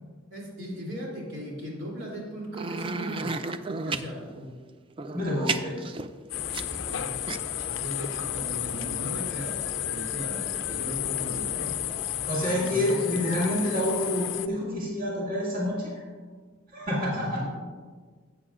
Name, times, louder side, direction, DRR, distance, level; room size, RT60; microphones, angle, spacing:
voice 1, 0.3-3.3 3.8-4.5 6.8-7.1 7.7-11.7 12.4-13.4 17.1-17.5, equal, 85° right, -4 dB, 2.8 m, -37 dB
sound 1, 2.5-4.1 4.9-6.9 7.3-7.4, right 4 dB, 25° right, 0.3 m, -32 dB
voice 2, 5.1-5.7 12.3-15.9 16.7-17.4, left 1 dB, 45° right, -6 dB, 2.2 m, -28 dB
sound 2, 6.3-14.5, left 12 dB, 70° left, 0.4 m, -32 dB
sound 3, 6.3-12.3, equal, ahead, 1.2 m, -44 dB
14.0 x 8.0 x 2.5 m, 1.5 s
head